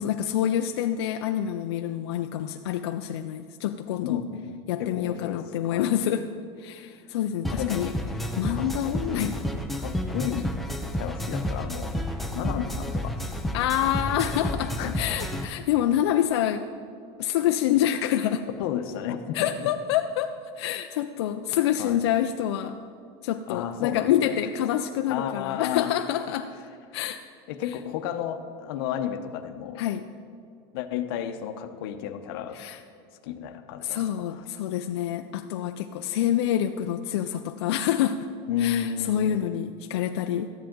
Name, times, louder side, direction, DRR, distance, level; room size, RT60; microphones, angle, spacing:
voice 1, 0.0-4.2 4.7-6.3 6.6-7.9 8.4-9.3 13.5-16.6 17.2-18.5 19.3-22.8 23.2-26.5 26.9-27.2 29.8-30.0 32.5-32.8 33.8-38.2 38.6-40.5, left 11 dB, 90° left, 7 dB, 0.4 m, -27 dB
voice 2, 4.0-5.9 7.5-7.9 8.5-9.4 9.8-10.6 11.0-11.9 12.3-13.4 14.8-14.9 18.6-19.7 21.8-22.0 23.5-24.4 25.1-26.0 27.5-29.8 30.7-32.6 33.2-34.4 38.5-39.4, left 9 dB, 65° left, 8 dB, 0.8 m, -32 dB
sound 1, 7.4-15.4, equal, ahead, 0.5 m, -31 dB
13.5 x 10.5 x 3.8 m, 2.4 s
supercardioid pair, 165°, 14 cm